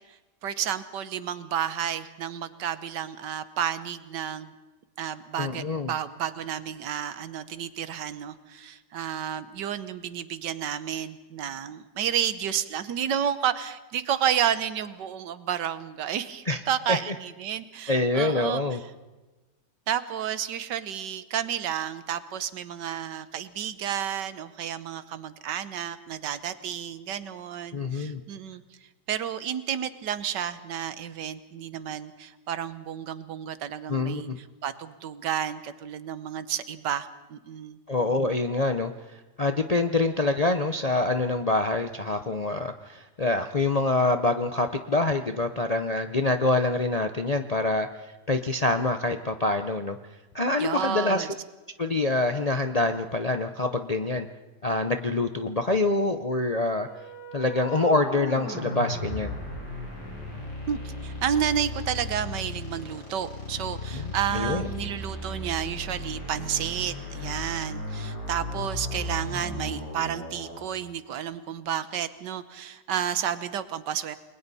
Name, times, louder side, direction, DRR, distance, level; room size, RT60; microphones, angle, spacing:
voice 1, 0.4-4.5 5.0-18.8 19.9-28.6 29.1-34.3 34.6-37.8 50.6-51.3 60.7-74.2, right 9 dB, 85° right, 13 dB, 1.6 m, -31 dB
voice 2, 5.4-5.9 16.5-16.6 16.9-17.1 17.9-18.8 27.7-28.2 33.9-34.4 37.9-50.0 50.3-51.3 51.8-54.3 54.6-56.9 57.3-59.3 63.9-64.7, left 2 dB, 45° left, 7 dB, 0.5 m, -26 dB
sound 1, 56.7-70.6, left 1 dB, 80° left, 7.2 m, -36 dB
29.5 x 21.5 x 4.2 m, 1.2 s
omnidirectional pair, 1.8 m